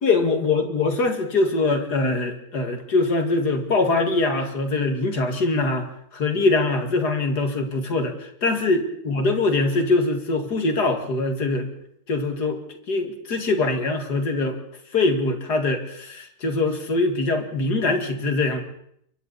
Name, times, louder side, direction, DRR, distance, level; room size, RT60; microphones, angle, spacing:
voice 1, 0.0-5.9 6.1-11.7 12.1-12.6 12.9-14.6 14.9-18.6, left 3 dB, 60° left, 5 dB, 2.6 m, -23 dB
28.5 x 24.0 x 4.1 m, 0.71 s
omnidirectional pair, 1.9 m